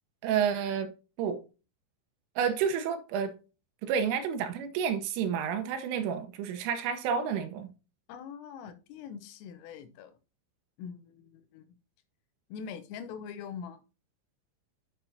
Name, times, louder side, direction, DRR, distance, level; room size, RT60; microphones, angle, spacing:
voice 1, 0.2-0.9 1.2-1.4 2.4-3.4 3.8-7.7, right 7 dB, 80° right, 3.4 m, -30 dB
voice 2, 8.1-10.1 10.8-11.7 12.5-13.8, left 7 dB, 85° left, 3.6 m, -43 dB
9.1 x 6.9 x 2.7 m
omnidirectional pair, 5.7 m